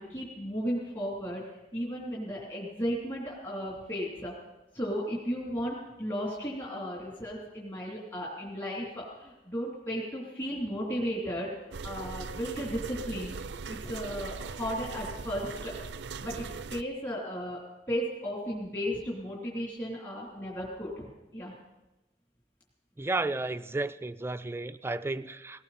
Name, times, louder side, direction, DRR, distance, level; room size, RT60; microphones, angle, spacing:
voice 1, 0.0-1.4 1.7-4.3 4.7-11.5 11.8-13.3 13.7-15.7 16.2-17.6 17.9-21.5, equal, 25° left, -4 dB, 3.0 m, -35 dB
sound 1, 11.7-16.8, right 4 dB, 80° right, 0.5 m, -40 dB
voice 2, 23.0-25.6, right 2 dB, 15° right, 12 dB, 0.4 m, -33 dB
18.5 x 17.5 x 4.2 m, 1.0 s
head